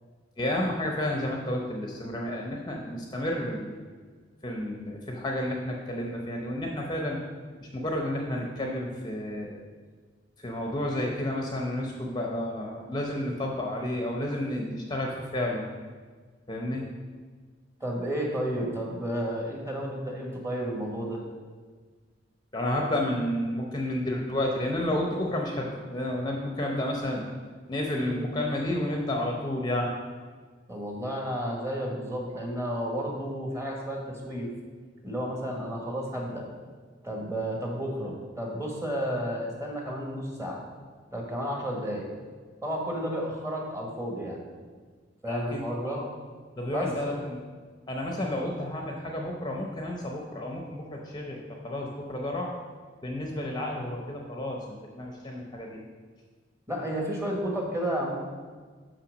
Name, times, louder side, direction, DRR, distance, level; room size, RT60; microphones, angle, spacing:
voice 1, 0.4-3.9 4.4-7.2 7.6-9.6 10.4-15.6 16.5-16.8 22.5-27.2 27.7-29.9 45.3-46.0 46.6-47.4 47.9-52.5 53.0-55.8, left 1 dB, 25° left, 0 dB, 0.7 m, -31 dB
voice 2, 17.8-21.2 30.7-34.5 35.0-36.4 37.0-40.6 41.1-42.1 42.6-44.4 45.2-46.0 46.7-47.2 56.7-58.1, equal, 15° right, -1 dB, 1.4 m, -32 dB
5.7 x 5.6 x 6.3 m, 1.5 s
head